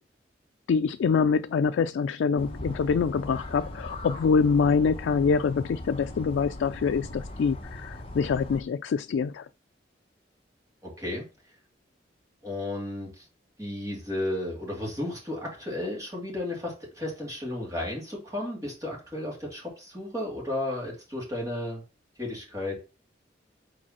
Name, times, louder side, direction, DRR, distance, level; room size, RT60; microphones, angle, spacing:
voice 1, 0.7-9.5, left 5 dB, 85° left, 0.3 m, -25 dB
sound 1, 2.4-8.6, left 1 dB, 30° left, 1.0 m, -39 dB
voice 2, 10.8-11.2 12.4-13.3 13.6-21.8 22.2-22.8, left 1 dB, 20° right, 2.6 m, -33 dB
5.0 x 4.1 x 5.8 m
head